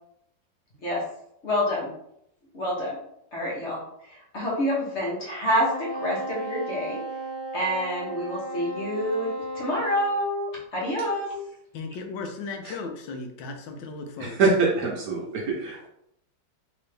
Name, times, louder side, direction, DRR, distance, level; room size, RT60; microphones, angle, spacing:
voice 1, 1.4-1.9 2.5-3.0 3.3-7.0 7.5-9.3 9.5-11.3, equal, 45° left, -4 dB, 1.0 m, -27 dB
Wind instrument woodwind instrument, 5.7-10.2, right 1 dB, 25° left, 0.8 m, -35 dB
voice 2, 11.7-14.4, left 3 dB, 90° left, 4 dB, 1.3 m, -36 dB
voice 3, 14.2-15.9, right 4 dB, 60° right, -2 dB, 1.1 m, -24 dB
3.3 x 2.9 x 3.2 m, 0.76 s
omnidirectional pair, 2.0 m